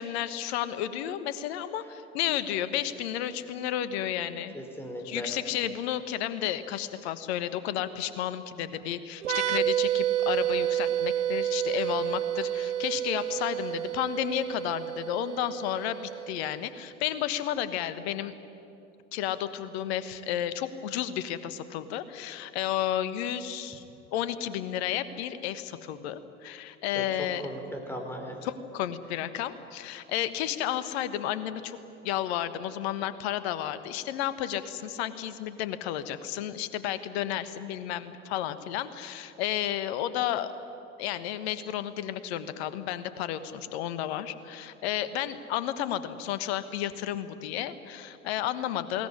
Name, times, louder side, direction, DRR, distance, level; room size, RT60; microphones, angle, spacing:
voice 1, 0.0-4.5 5.0-16.0 16.3-18.3 19.1-23.8 24.1-27.4 28.4-31.8 32.0-40.5 41.0-49.1, left 11 dB, 60° left, 13 dB, 1.4 m, -32 dB
voice 2, 4.5-5.3 26.9-28.5, equal, 5° left, 2 dB, 4.7 m, -38 dB
sound 1, 9.2-16.7, right 11 dB, 80° right, 0.8 m, -30 dB
21.0 x 18.5 x 9.9 m, 2.8 s
figure-of-eight pair, 75°, 36 cm